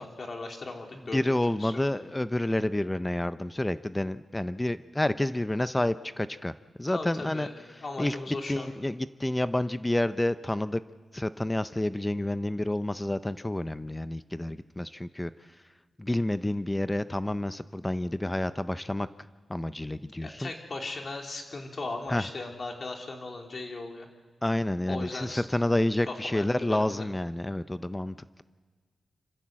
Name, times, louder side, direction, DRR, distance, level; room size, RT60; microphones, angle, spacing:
voice 1, 0.0-1.7 6.9-8.7 20.2-24.1 24.9-25.4 26.0-27.0, left 3 dB, 45° left, 2 dB, 3.1 m, -38 dB
voice 2, 1.1-6.5 6.8-7.5 8.0-8.2 8.5-10.8 11.1-15.3 16.0-19.1 19.5-20.5 22.1-22.2 24.4-28.4, left 1 dB, 15° left, 13 dB, 0.5 m, -29 dB
26.5 x 15.0 x 7.5 m, 1.4 s
wide cardioid pair, 90°, 0 cm